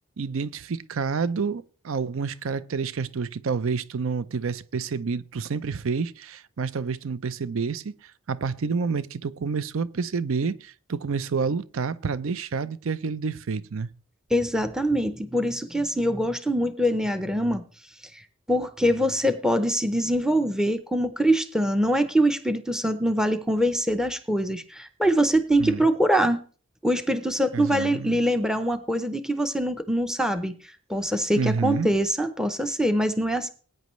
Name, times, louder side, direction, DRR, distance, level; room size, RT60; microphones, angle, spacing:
voice 1, 0.2-13.9 25.6-25.8 27.5-28.2 31.4-31.9, right 5 dB, 70° right, 0.5 m, -29 dB
voice 2, 14.3-17.6 18.1-26.4 26.8-33.5, equal, 5° right, 0.6 m, -24 dB
19.5 x 9.2 x 3.1 m
head